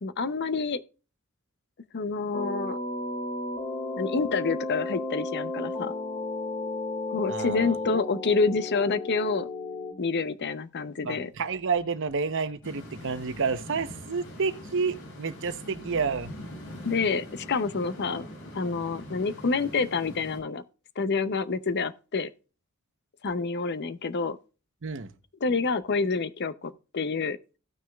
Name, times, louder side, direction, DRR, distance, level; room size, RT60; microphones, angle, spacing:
voice 1, 0.0-0.8 1.9-2.8 4.0-5.9 7.1-9.5 10.0-11.3 16.8-18.3 18.5-20.6 21.0-22.3 23.2-24.4 25.4-27.4, left 4 dB, 50° left, 0.6 m, -28 dB
sound 1, 2.3-9.9, left 2 dB, 35° left, 2.6 m, -33 dB
voice 2, 7.3-7.8 11.0-16.3 24.8-25.1, right 5 dB, 60° right, 0.8 m, -30 dB
sound 2, 12.6-20.4, left 1 dB, 80° left, 4.7 m, -43 dB
17.0 x 6.2 x 2.3 m
head